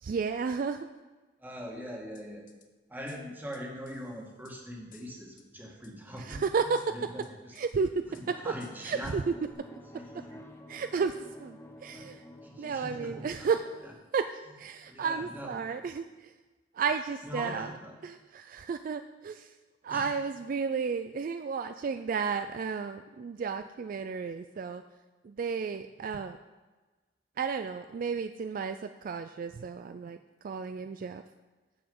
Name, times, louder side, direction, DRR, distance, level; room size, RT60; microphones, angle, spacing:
voice 1, 0.0-0.9 6.2-7.1 7.5-8.5 8.8-9.3 10.7-12.2 12.6-13.6 14.1-16.3 16.7-17.7 18.0-19.6 19.8-24.8 25.2-26.4 27.4-31.2, right 5 dB, 50° right, 9 dB, 0.3 m, -33 dB
voice 2, 1.4-2.4 2.9-6.4 6.9-7.5 8.4-9.1 9.9-10.4 11.9-12.1 12.4-13.5 13.8-13.9 14.8-15.9 17.2-17.9 19.9-20.1, equal, 10° right, -1 dB, 1.7 m, -42 dB
sound 1, 2.1-2.7 3.1-4.6 4.9-5.5 5.8-6.4 6.7-7.7 8.1-8.3 8.6-9.2 9.5-9.6, left 8 dB, 45° left, 0.8 m, -59 dB
sound 2, 8.2-13.9, left 1 dB, 15° left, 0.8 m, -50 dB
9.3 x 7.0 x 5.4 m, 1.2 s
head